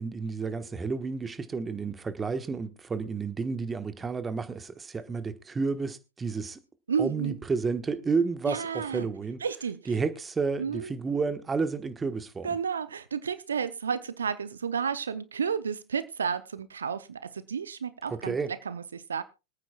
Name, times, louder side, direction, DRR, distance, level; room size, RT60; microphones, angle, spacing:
voice 1, 0.0-6.6 7.0-9.4 9.9-12.5 18.1-18.5, right 4 dB, 15° right, 1.3 m, -31 dB
voice 2, 6.9-7.4 8.5-9.1 9.4-9.8 10.6-10.9 12.4-18.4 18.7-19.2, right 6 dB, 75° right, 0.6 m, -31 dB
25.5 x 9.1 x 2.3 m
figure-of-eight pair, 90°, 0 cm